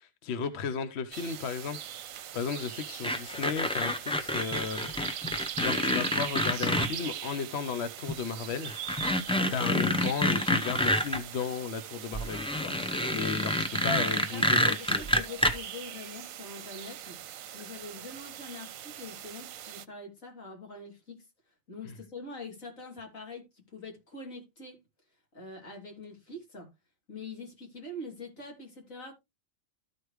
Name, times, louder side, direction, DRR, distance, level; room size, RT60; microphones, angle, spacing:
voice 1, 0.0-1.8 2.1-4.9 5.6-8.7 9.4-12.7 13.1-13.5 13.8-15.0 21.8-21.9, left 6 dB, 60° left, 0.9 m, -34 dB
sound 1, 1.1-19.8, right 11 dB, 80° right, 1.0 m, -41 dB
sound 2, 3.0-6.9 8.1-8.2 8.7-11.2 12.1-15.5, left 1 dB, 5° left, 0.5 m, -28 dB
voice 2, 13.8-17.2 17.5-21.2 21.7-23.5 23.7-24.8 25.3-26.7 27.1-29.1, left 2 dB, 75° left, 3.4 m, -44 dB
14.0 x 4.8 x 3.1 m
omnidirectional pair, 1.4 m